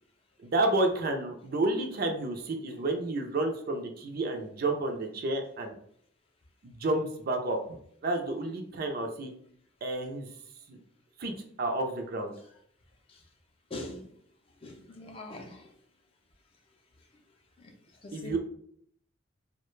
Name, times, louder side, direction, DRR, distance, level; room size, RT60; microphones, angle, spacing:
voice 1, 0.4-5.8 6.6-7.8 8.0-9.3 9.8-10.3 10.7-10.8 11.2-12.3 18.1-18.4, right 2 dB, 50° right, 4 dB, 0.4 m, -30 dB
voice 2, 13.7-14.1 14.6-15.7 18.0-18.4, left 2 dB, 30° left, 2 dB, 0.4 m, -41 dB
2.3 x 2.1 x 3.1 m, 0.63 s
head